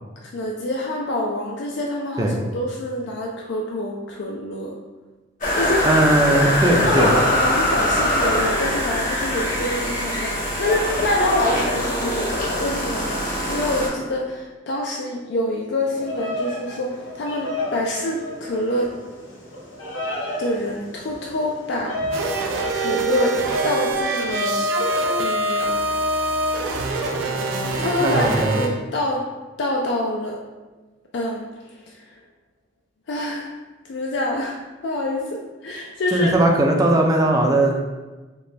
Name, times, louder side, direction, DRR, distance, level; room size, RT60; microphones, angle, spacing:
voice 1, 0.2-4.7 5.6-5.9 6.6-18.9 20.4-22.3 22.7-24.7 25.2-25.7 27.8-29.3 29.6-30.4 31.1-32.1 33.1-33.5 33.8-34.6 34.8-36.4, left 1 dB, 60° left, -1 dB, 0.4 m, -26 dB
sound 1, 5.4-13.9, equal, 45° left, 1.0 m, -23 dB
voice 2, 5.8-7.1 28.0-28.6 36.1-37.8, right 1 dB, 20° right, 1 dB, 0.4 m, -18 dB
Bird vocalization bird call bird song, 15.8-23.9, left 1 dB, 80° left, 0.9 m, -31 dB
sound 2, 22.1-28.7, right 2 dB, 80° right, 0.4 m, -24 dB
4.1 x 2.2 x 3.2 m, 1.2 s
head